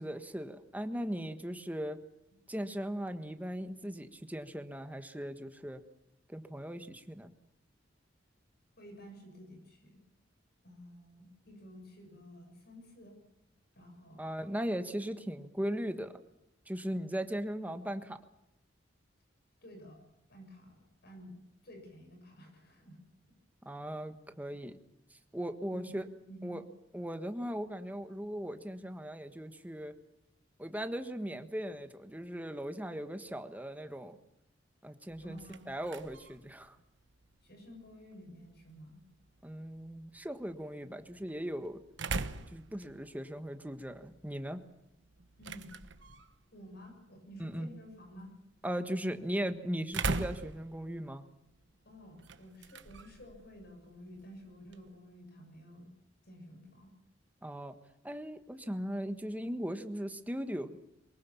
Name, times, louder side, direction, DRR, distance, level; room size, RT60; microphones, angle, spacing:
voice 1, 0.0-2.0 2.5-5.8 6.3-7.3 14.2-16.1 16.7-18.2 23.6-24.8 25.3-26.1 26.4-26.6 26.9-30.0 30.6-34.2 34.8-35.4 35.7-36.8 39.4-41.8 42.5-44.6 47.4-47.7 48.6-51.3 57.4-57.7 58.0-60.8, equal, 10° right, 8 dB, 1.4 m, -38 dB
voice 2, 8.8-10.0 10.6-13.2 13.8-14.4 19.6-20.0 20.3-21.4 21.6-23.0 25.7-26.6 35.2-35.7 37.4-39.0 45.4-45.7 46.5-48.3 51.9-55.9 56.2-56.9, equal, 60° left, 4 dB, 6.9 m, -52 dB
sound 1, 35.1-55.0, right 3 dB, 70° right, 1.1 m, -44 dB
23.5 x 21.5 x 7.2 m, 0.86 s
head